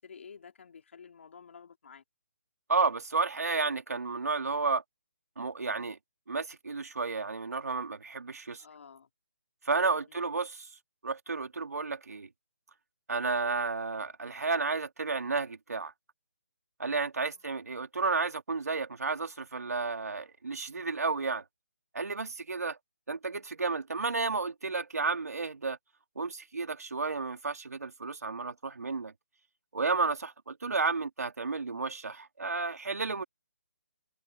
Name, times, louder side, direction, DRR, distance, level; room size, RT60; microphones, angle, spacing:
voice 1, 0.0-2.0 8.6-9.1 9.9-10.3 17.3-17.4, left 6 dB, 55° left, 3.9 m, -51 dB
voice 2, 2.7-4.8 5.4-6.0 6.3-8.6 9.6-10.7 11.0-12.3 13.1-15.9 16.8-21.4 21.9-22.8 23.1-25.8 26.2-29.1 29.7-33.2, right 4 dB, 90° right, 2.9 m, -32 dB
hypercardioid pair, 165°, 8 cm